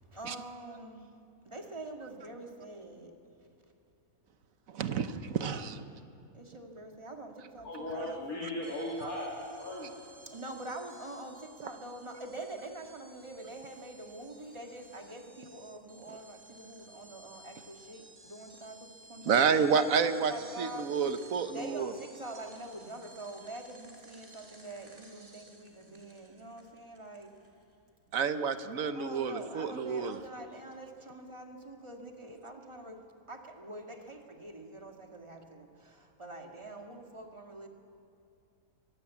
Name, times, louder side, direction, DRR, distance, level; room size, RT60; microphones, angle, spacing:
voice 1, 0.1-1.0 1.5-3.1 6.3-8.2 10.3-19.8 20.3-20.9 21.5-27.3 28.9-33.0 33.3-37.7, right 2 dB, 20° right, 2 dB, 1.9 m, -45 dB
voice 2, 4.7-5.8 19.2-20.3 20.6-21.9 28.1-30.2, right 6 dB, 65° right, 10 dB, 1.3 m, -29 dB
voice 3, 7.6-9.3 9.6-9.9, left 1 dB, 70° left, -5 dB, 3.2 m, -37 dB
sound 1, 8.6-27.8, right 2 dB, 40° right, 3.2 m, -56 dB
22.5 x 15.0 x 8.4 m, 2.6 s
omnidirectional pair, 1.6 m